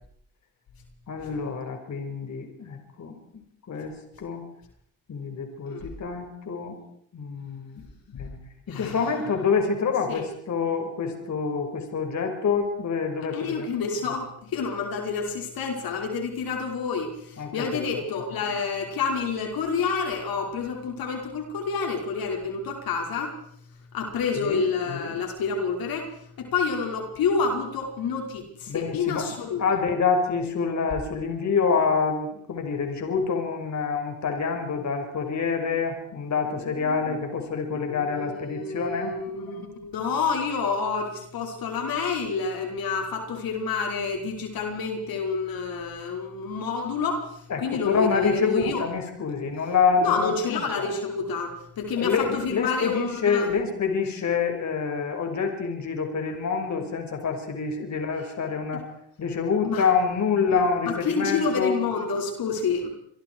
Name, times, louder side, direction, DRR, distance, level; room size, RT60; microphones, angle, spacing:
voice 1, 1.1-3.2 3.7-4.4 5.1-6.8 7.1-7.9 8.2-8.4 8.7-13.7 17.4-17.9 24.3-24.6 28.7-29.3 29.6-39.2 47.5-50.9 52.0-58.8 59.2-61.7, left 5 dB, 50° left, 4 dB, 5.9 m, -27 dB
voice 2, 13.3-23.3 23.9-26.1 26.4-29.6 36.8-37.2 37.7-48.8 50.0-53.5 58.2-58.3 58.7-58.8 59.6-59.9 60.5-62.9, left 5 dB, 70° left, 2 dB, 5.7 m, -29 dB
28.0 x 24.0 x 4.8 m, 0.68 s
cardioid pair, 100°, 37 cm